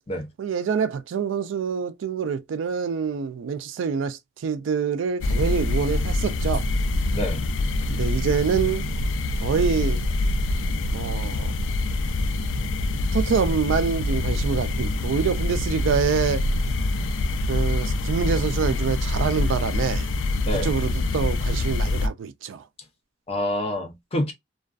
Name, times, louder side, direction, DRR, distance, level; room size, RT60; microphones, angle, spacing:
voice 1, 0.4-6.6 7.9-8.9 9.4-10.0 10.9-11.5 13.1-16.4 17.5-20.1 20.6-22.6, right 6 dB, 80° right, 0.3 m, -26 dB
sound 1, 5.2-22.1, left 2 dB, 75° left, 0.4 m, -25 dB
voice 2, 23.3-24.3, left 1 dB, 30° left, 0.6 m, -27 dB
2.4 x 2.3 x 2.3 m
head